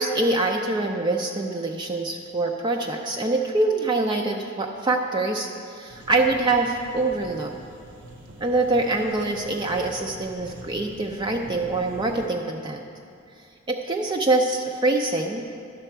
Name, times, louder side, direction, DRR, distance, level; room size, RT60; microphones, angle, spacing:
voice 1, 0.0-7.5 8.4-12.8 13.7-15.4, right 2 dB, 20° right, 2 dB, 0.4 m, -24 dB
sound 1, 5.9-12.3, equal, 65° right, 1.1 m, -44 dB
11.0 x 6.8 x 4.5 m, 2.4 s
head